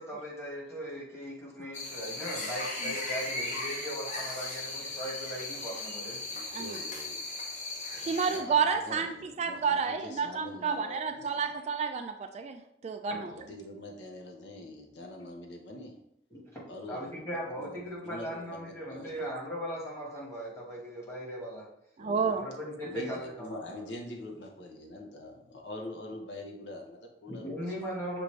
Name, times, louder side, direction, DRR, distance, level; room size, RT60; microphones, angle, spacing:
voice 1, 0.0-6.2 16.3-21.7 22.3-23.9 27.3-28.2, equal, 15° left, -4 dB, 1.3 m, -39 dB
sound 1, 1.7-8.4, left 2 dB, 45° left, 0.9 m, -37 dB
voice 2, 6.3-7.2 7.9-11.5 13.1-15.9 16.7-17.2 17.6-17.8 18.0-18.6 18.9-19.1 22.0-22.3 22.8-27.9, left 1 dB, 75° left, 1 dB, 0.8 m, -44 dB
voice 3, 8.1-13.3 22.0-22.5, right 6 dB, 40° right, 6 dB, 0.3 m, -30 dB
6.3 x 2.6 x 3.1 m, 0.75 s
head